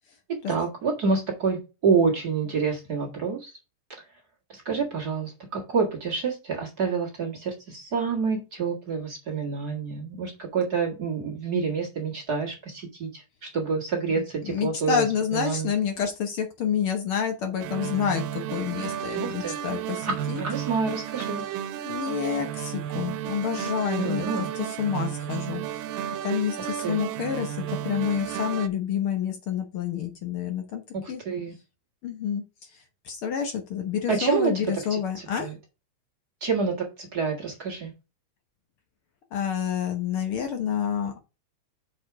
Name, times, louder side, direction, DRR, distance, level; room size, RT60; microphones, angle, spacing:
voice 1, 0.3-3.5 4.5-15.0 15.3-15.7 19.2-19.6 20.0-21.4 24.0-24.5 26.6-27.0 31.0-31.5 34.1-34.5 34.9-35.5 36.4-37.9, right 5 dB, 35° right, -1 dB, 2.0 m, -28 dB
voice 2, 14.4-20.4 21.8-24.3 24.8-25.8 26.2-30.8 31.1-31.2 32.0-32.4 33.0-35.5 39.3-41.2, left 8 dB, 70° left, 5 dB, 1.3 m, -28 dB
sound 1, 17.6-28.7, right 10 dB, 90° right, 2.3 m, -33 dB
6.4 x 4.9 x 4.7 m, 0.28 s
omnidirectional pair, 3.8 m